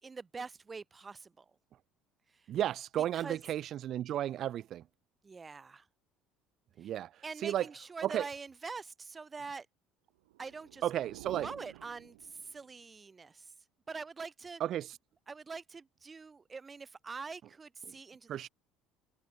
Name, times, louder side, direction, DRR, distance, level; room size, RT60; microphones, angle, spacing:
voice 1, 0.0-1.4 2.3-2.5 3.0-3.4 5.2-5.9 6.8-6.9 7.2-9.7 10.4-10.8 11.3-13.5 13.9-14.6 15.3-18.5, right 4 dB, 25° right, 3.1 m, -45 dB
voice 2, 2.5-4.8 6.8-7.6 8.0-8.2 10.8-11.5 14.6-15.0 18.3-18.5, right 11 dB, 55° right, 0.4 m, -33 dB
sound 1, 10.2-12.8, right 18 dB, 90° right, 5.5 m, -52 dB
supercardioid pair, 75°, 0 cm